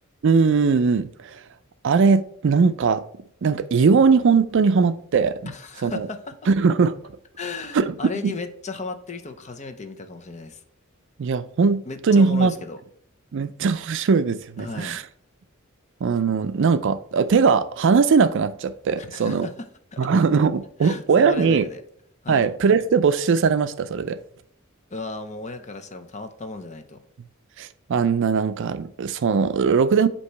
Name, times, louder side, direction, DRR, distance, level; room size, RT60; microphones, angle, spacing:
voice 1, 0.2-1.4 1.8-3.0 3.4-5.4 5.8-6.1 6.5-7.0 7.7-7.9 8.2-8.3 11.2-12.5 13.3-15.0 16.0-19.5 20.0-21.6 22.3-24.2 27.6-30.1, right 5 dB, 60° right, 0.4 m, -20 dB
voice 2, 5.5-6.2 7.4-10.6 11.9-12.8 14.6-15.0 19.0-19.7 19.9-20.0 20.8-21.8 22.2-22.5 24.9-27.0, left 3 dB, 35° left, 0.7 m, -35 dB
8.3 x 2.9 x 4.5 m
head